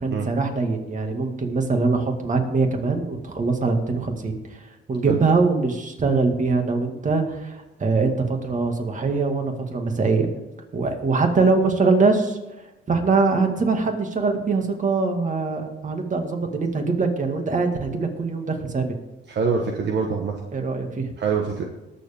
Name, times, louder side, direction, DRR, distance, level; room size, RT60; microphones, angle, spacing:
voice 1, 0.0-4.6 4.9-10.3 10.7-12.4 12.9-19.0 20.5-21.1, right 4 dB, 40° right, 4 dB, 2.0 m, -23 dB
voice 2, 19.3-20.4 21.2-21.6, right 5 dB, 60° right, 2 dB, 1.3 m, -24 dB
19.5 x 7.1 x 3.6 m, 1.0 s
cardioid pair, 90°, 20 cm